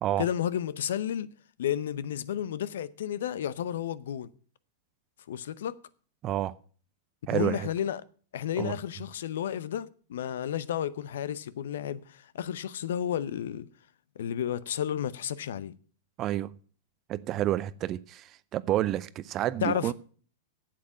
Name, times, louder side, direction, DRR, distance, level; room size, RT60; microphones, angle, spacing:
voice 1, 0.2-1.3 1.6-4.3 5.3-5.8 7.3-8.0 8.3-13.7 14.2-15.7 19.6-19.9, left 10 dB, 70° left, 0.7 m, -32 dB
voice 2, 6.2-6.5 7.3-7.7 8.6-8.7 16.2-16.6 17.1-19.9, right 13 dB, 35° right, 0.6 m, -29 dB
8.4 x 7.6 x 8.3 m
hypercardioid pair, 105°, 0 cm